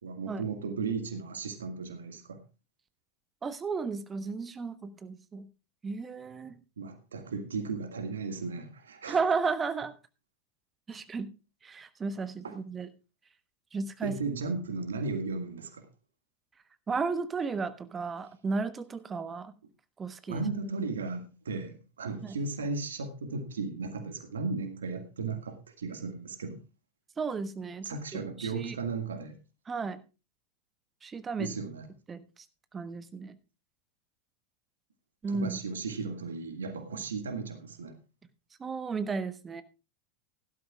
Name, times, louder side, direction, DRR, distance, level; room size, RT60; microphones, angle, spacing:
voice 1, 0.0-2.4 6.8-9.2 12.4-12.6 14.0-15.9 20.3-26.6 27.8-29.4 31.4-31.9 35.3-38.0, right 4 dB, 75° right, 1.8 m, -35 dB
voice 2, 3.4-5.5 5.8-6.5 9.1-9.9 10.9-11.3 11.6-12.9 13.7-14.2 16.9-19.5 20.0-20.4 22.2-22.3 27.2-28.8 29.7-30.0 31.0-31.5 32.1-32.2 32.7-33.4 35.2-35.6 38.6-39.6, right 4 dB, 20° right, 1.2 m, -33 dB
17.0 x 12.0 x 2.4 m
figure-of-eight pair, 85°, 0 cm